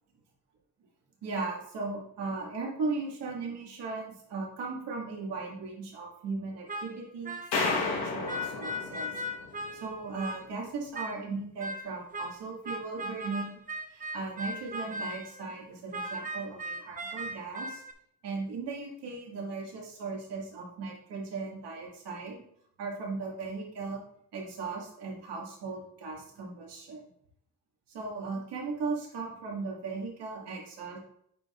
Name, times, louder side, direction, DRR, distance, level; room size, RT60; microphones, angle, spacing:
voice 1, 1.2-9.2 9.7-13.6 13.9-17.8 18.2-22.4 22.8-24.0 24.3-27.0 27.9-31.0, right 4 dB, 90° right, -2 dB, 2.0 m, -37 dB
sound 1, 6.7-8.0 8.3-10.5 10.9-11.2 11.6-15.5 15.9-17.9, equal, 20° right, 0.6 m, -38 dB
sound 2, 7.5-9.8, left 3 dB, 85° left, 1.4 m, -32 dB
9.3 x 4.7 x 2.5 m, 0.69 s
cardioid pair, 105°, 40 cm